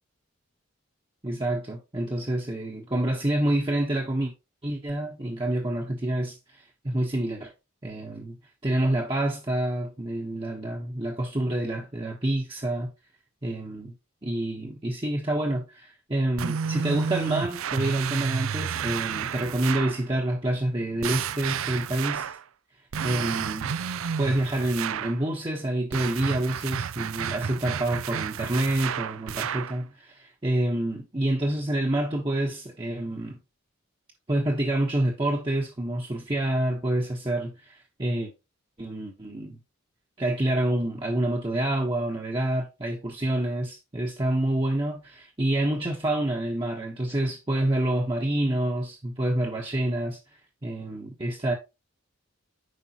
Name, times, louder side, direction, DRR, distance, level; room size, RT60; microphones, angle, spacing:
voice 1, 1.2-4.3 4.6-7.5 7.8-8.4 8.6-12.9 13.4-13.9 14.2-22.3 23.0-33.4 34.3-38.3 38.8-39.6 40.2-50.2 50.6-51.6, right 1 dB, 25° right, 1.1 m, -28 dB
sound 1, 16.4-20.0 21.0-22.4 22.9-25.2 25.9-29.8, right 7 dB, 75° right, 0.5 m, -31 dB
9.5 x 5.3 x 2.9 m
head